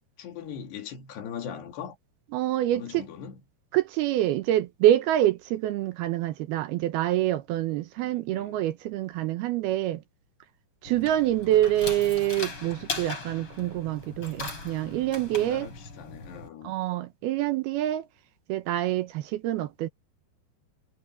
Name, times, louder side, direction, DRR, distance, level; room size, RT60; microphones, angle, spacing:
voice 1, 0.2-2.0 2.7-3.4 8.0-8.6 11.2-11.4 14.6-14.7 15.3-16.8, left 8 dB, 75° left, 4.6 m, -41 dB
voice 2, 2.3-3.0 3.7-10.0 10.8-15.7 16.6-18.1 18.5-19.9, right 13 dB, 75° right, 2.7 m, -26 dB
sound 1, 10.8-16.5, left 3 dB, 30° left, 5.6 m, -39 dB
omnidirectional pair, 4.8 m